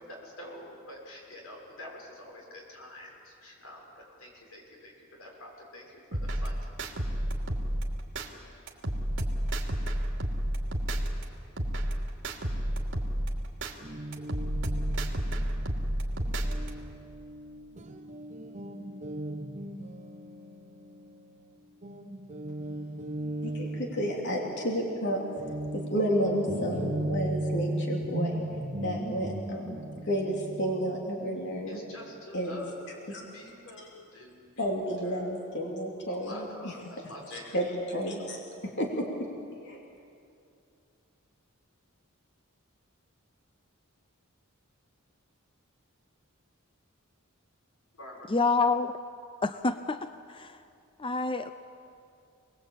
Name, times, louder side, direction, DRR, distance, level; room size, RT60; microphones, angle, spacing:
voice 1, 0.0-3.1 3.4-3.8 4.2-4.9 5.2-5.8 6.4-6.5 31.7-32.7 33.1-34.5 36.1-36.7 37.1-37.5 48.0-48.3, left 1 dB, 85° left, -1 dB, 6.8 m, -46 dB
sound 1, 6.1-8.3 8.7-11.2 11.6-13.7 14.1-16.7, right 1 dB, 60° right, 2.8 m, -30 dB
Guitar, 13.8-21.5 21.8-32.3, right 1 dB, 35° right, 1.3 m, -37 dB
voice 2, 23.4-28.4 28.8-31.8 32.3-33.2 33.8-33.9 34.6-39.3 39.6-39.8, equal, 55° left, -1 dB, 2.9 m, -32 dB
voice 3, 48.3-48.9 49.4-50.6 51.0-51.5, left 4 dB, 25° left, 10 dB, 0.6 m, -28 dB
28.5 x 20.5 x 8.7 m, 2.6 s
head